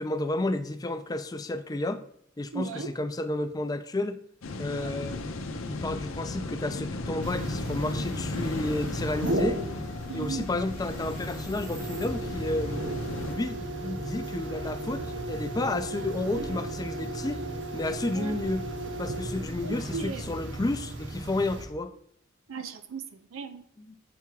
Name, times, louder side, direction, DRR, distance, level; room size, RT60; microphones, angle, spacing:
voice 1, 0.0-2.0 2.4-4.2 4.6-5.2 5.7-9.6 10.1-12.8 13.2-17.4 17.7-18.7 19.0-21.9 23.8-24.0, left 2 dB, 20° left, 9 dB, 0.4 m, -31 dB
voice 2, 2.5-2.9 4.7-5.0 8.4-8.5 10.1-10.5 15.9-16.0 18.1-18.4 19.0-19.1 19.6-20.2 22.5-23.6, right 5 dB, 85° right, 9 dB, 0.5 m, -37 dB
sound 1, 4.4-13.3, left 2 dB, 90° left, 0.6 m, -36 dB
sound 2, 7.2-21.7, right 1 dB, 60° right, 1.0 m, -35 dB
7.1 x 3.5 x 4.6 m, 0.64 s
head